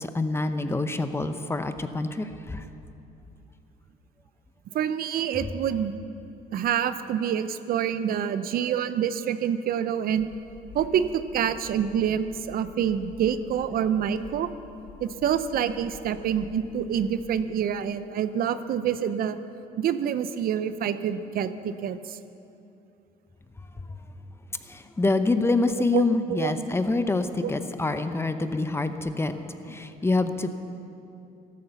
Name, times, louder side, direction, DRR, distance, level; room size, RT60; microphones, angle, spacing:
voice 1, 0.0-2.6 23.8-23.9 24.6-29.4 29.6-30.5, left 3 dB, 15° left, 9 dB, 0.8 m, -26 dB
voice 2, 4.7-5.9 6.5-10.3 10.7-14.5 15.0-19.4 19.8-22.2 25.9-26.0 26.3-26.6 27.4-27.5, right 9 dB, 60° right, 12 dB, 0.7 m, -27 dB
sound 1, 10.2-17.4, left 4 dB, 90° left, 2.3 m, -48 dB
13.5 x 12.5 x 7.0 m, 2.7 s
cardioid pair, 110°, 17 cm